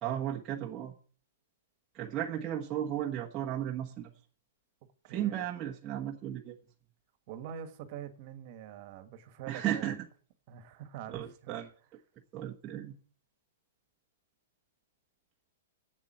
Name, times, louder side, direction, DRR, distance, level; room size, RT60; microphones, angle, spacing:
voice 1, 0.0-0.9 1.9-4.1 5.1-6.5 9.5-10.0 11.1-11.7 12.3-12.9, right 11 dB, 20° right, 1.2 m, -35 dB
voice 2, 5.1-5.4 7.3-10.0 10.5-11.6, right 9 dB, 40° right, 1.6 m, -44 dB
8.5 x 7.4 x 8.6 m
hypercardioid pair, 155°, 0 cm